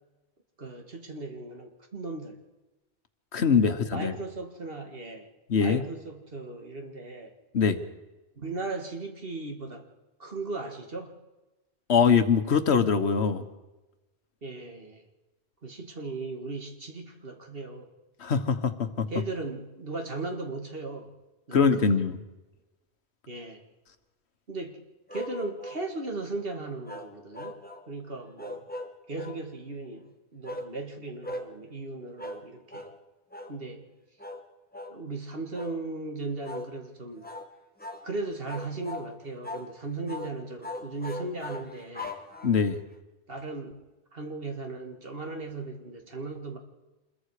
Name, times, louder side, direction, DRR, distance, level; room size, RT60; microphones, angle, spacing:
voice 1, 0.6-2.4 3.6-5.3 5.6-7.3 8.4-9.9 10.2-11.1 14.4-15.0 15.6-17.9 19.1-21.1 21.5-21.8 23.3-23.6 24.5-24.8 25.1-27.6 27.9-28.7 29.1-32.9 33.5-33.9 34.9-37.3 38.0-42.2 43.3-43.8 44.1-46.6, right 3 dB, 60° right, 4 dB, 2.3 m, -37 dB
voice 2, 3.3-4.1 5.5-5.8 7.5-7.8 11.9-13.4 18.2-19.1 21.5-22.2 42.4-42.8, left 6 dB, 80° left, 10 dB, 1.4 m, -23 dB
sound 1, 25.1-25.9 26.9-27.9 28.4-29.4 30.4-30.7 31.2-31.5 32.2-32.4 32.7-33.0 33.3-33.6 34.2-34.4 34.7-35.0 35.5-35.8 36.4-36.7 37.2-37.5 37.8-38.1 38.5-39.1 39.4-39.7 40.1-40.3 40.6-42.7, left 1 dB, 10° left, 1.3 m, -39 dB
26.5 x 21.5 x 4.9 m, 1.1 s
omnidirectional pair, 1.1 m